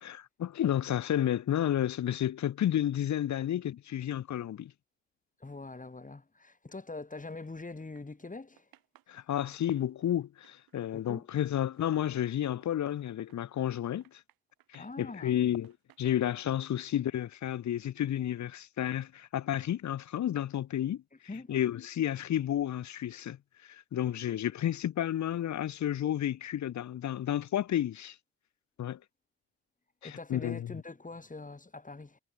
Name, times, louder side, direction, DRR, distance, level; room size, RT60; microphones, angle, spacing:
voice 1, 0.0-4.7 9.1-14.2 14.7-21.0 21.5-23.4 23.6-28.2 28.8-29.0 30.0-30.7, left 11 dB, 50° left, 0.9 m, -31 dB
voice 2, 5.4-8.7 10.9-11.3 14.8-15.4 21.3-21.5 30.0-32.2, left 3 dB, 20° left, 3.8 m, -43 dB
sound 1, 7.3-8.3 8.6-13.7 14.0-15.0 15.5-16.6, right 15 dB, 75° right, 6.1 m, -66 dB
supercardioid pair, 55°, 36 cm